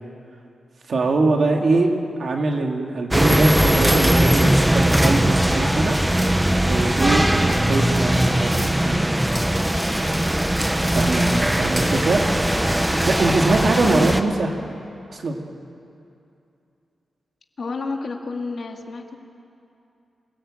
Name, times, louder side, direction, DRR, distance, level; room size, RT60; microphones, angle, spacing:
voice 1, 0.9-1.9 2.2-5.9 6.6-9.1 10.9-12.2 12.9-14.5 15.1-15.4, right 3 dB, 50° right, 2 dB, 2.5 m, -22 dB
sound 1, 3.1-14.2, right 1 dB, 5° right, 1.0 m, -19 dB
voice 2, 11.1-11.4 13.6-14.1 17.6-19.2, left 4 dB, 50° left, 2 dB, 2.2 m, -31 dB
27.0 x 18.5 x 9.0 m, 2.6 s
wide cardioid pair, 165°, 0 cm